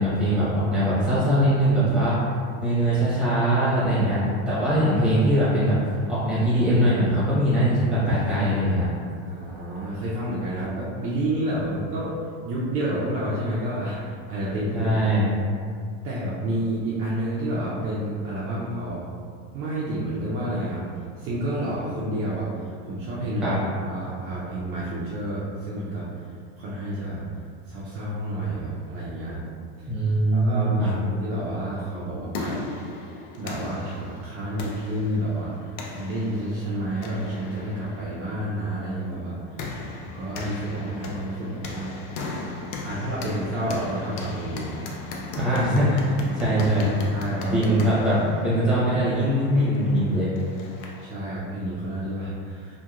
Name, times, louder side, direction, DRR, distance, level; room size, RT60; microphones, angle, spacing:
voice 1, 0.0-2.1 2.6-4.2 4.5-8.8 14.7-15.3 23.4-23.6 29.9-30.9 45.4-46.9 47.5-50.3, equal, 5° right, -10 dB, 0.9 m, -21 dB
voice 2, 9.2-12.1 12.4-14.9 15.2-15.3 16.0-19.0 19.5-20.9 21.2-23.6 23.8-26.3 26.6-27.3 27.7-29.4 29.8-29.9 30.3-32.6 33.4-39.4 40.0-41.9 42.8-44.7 47.1-47.6 47.9-48.0 51.0-52.7, right 1 dB, 40° right, -8 dB, 0.4 m, -30 dB
sound 1, 31.9-51.1, left 2 dB, 55° left, 0.4 m, -37 dB
2.8 x 2.2 x 2.4 m, 2.2 s
cardioid pair, 155°, 32 cm